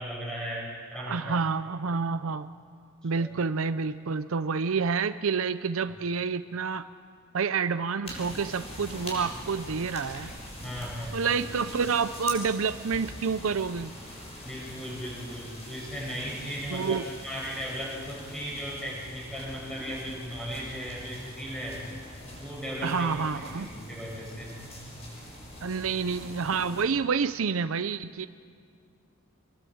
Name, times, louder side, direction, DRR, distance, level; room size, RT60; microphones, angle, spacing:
voice 1, 0.0-1.4 3.0-3.3 10.6-11.3 14.4-17.0 17.2-21.8 22.4-24.5, equal, 5° left, -5 dB, 7.8 m, -37 dB
voice 2, 1.0-2.5 3.0-6.8 7.3-10.3 11.1-13.9 16.7-17.1 22.8-23.7 25.6-28.3, right 5 dB, 65° right, 12 dB, 0.6 m, -28 dB
sound 1, 8.0-26.8, left 1 dB, 30° left, 6.6 m, -43 dB
26.5 x 22.0 x 7.9 m, 2.2 s
head